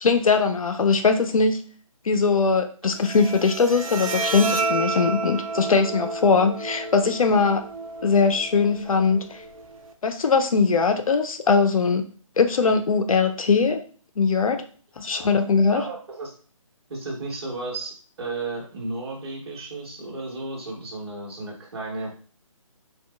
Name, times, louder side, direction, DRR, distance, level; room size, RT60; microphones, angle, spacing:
voice 1, 0.0-1.6 2.1-7.6 8.0-9.4 10.0-12.1 12.4-13.8 14.2-14.6 15.0-15.8, left 4 dB, 80° left, 7 dB, 0.5 m, -21 dB
Bowed string instrument, 2.9-9.9, right 3 dB, 75° right, 0.5 m, -31 dB
voice 2, 15.1-15.4 15.7-16.3 16.9-22.1, right 2 dB, 50° right, -3 dB, 1.1 m, -34 dB
2.8 x 2.3 x 2.3 m, 0.42 s
hypercardioid pair, 160°, 18 cm